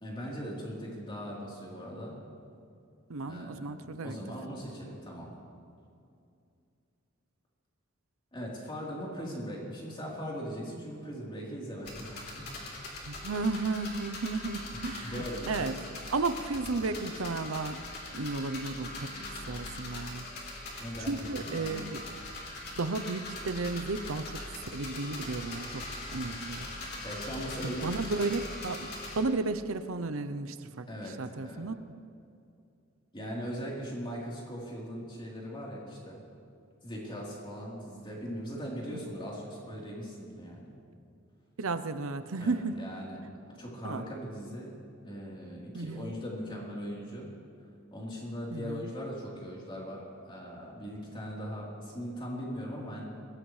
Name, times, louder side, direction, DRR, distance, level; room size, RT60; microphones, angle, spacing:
voice 1, 0.0-2.2 3.3-5.3 8.3-12.5 13.0-13.2 15.0-15.7 20.8-21.8 27.0-28.3 30.9-31.7 33.1-36.2 36.8-40.7 42.4-43.2 43.5-44.7 45.0-47.3 47.9-53.0, equal, 25° left, -4 dB, 3.6 m, -40 dB
voice 2, 3.1-4.2 13.0-15.7 16.1-17.8 18.1-19.1 19.5-20.2 20.7-22.0 22.8-24.4 24.7-26.7 27.6-28.9 29.2-31.8 41.6-42.8 43.8-44.1 45.7-46.1 48.5-48.9, right 3 dB, 80° right, 11 dB, 0.7 m, -33 dB
sound 1, 11.8-29.2, left 2 dB, 55° left, 3.6 m, -41 dB
22.0 x 16.5 x 3.3 m, 2.5 s
head